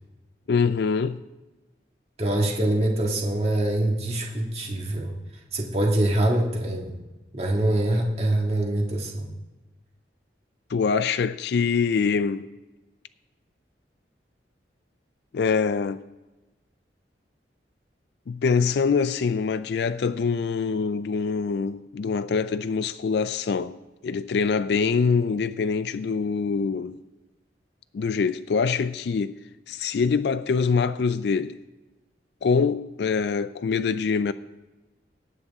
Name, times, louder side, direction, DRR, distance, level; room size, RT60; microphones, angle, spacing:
voice 1, 0.5-1.2 10.7-12.5 15.3-16.0 18.3-23.8 24.0-27.0 27.9-29.4 29.7-31.5 32.4-34.3, left 5 dB, 70° left, 0.4 m, -24 dB
voice 2, 2.2-5.1 5.5-7.0 7.3-9.3, right 1 dB, 35° right, 1.8 m, -24 dB
18.0 x 7.9 x 3.6 m
head